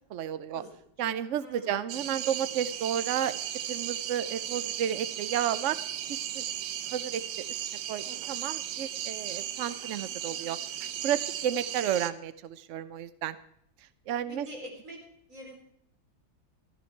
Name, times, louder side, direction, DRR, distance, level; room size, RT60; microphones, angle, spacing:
voice 1, 0.1-0.6 1.0-5.8 6.1-7.2 7.5-7.6 7.9-10.6 11.0-13.4 14.1-14.5, right 9 dB, 90° right, 14 dB, 0.6 m, -32 dB
voice 2, 1.4-2.0 8.0-8.3 14.3-15.0 15.3-15.5, equal, 40° right, 0 dB, 4.1 m, -45 dB
sound 1, 1.9-12.1, right 11 dB, 70° right, 1.2 m, -36 dB
13.5 x 13.0 x 4.6 m, 0.69 s
omnidirectional pair, 2.1 m